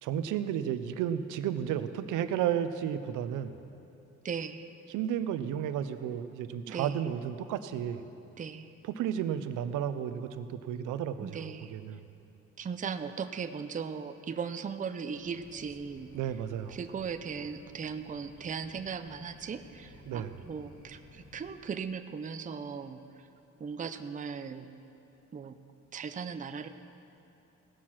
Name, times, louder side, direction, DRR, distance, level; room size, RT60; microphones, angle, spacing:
voice 1, 0.0-3.6 4.9-8.0 8.8-12.0 16.1-16.8 20.1-20.5, right 9 dB, 90° right, 11 dB, 0.6 m, -33 dB
voice 2, 4.2-4.7 6.7-7.0 8.4-8.7 11.2-11.7 12.6-16.1 16.7-23.0 23.6-24.7 25.3-25.6 25.9-26.7, right 6 dB, 25° right, 9 dB, 0.5 m, -38 dB
sound 1, 15.1-21.5, left 1 dB, 50° left, 2.6 m, -55 dB
17.0 x 6.4 x 5.9 m, 2.8 s
cardioid pair, 90°, 30 cm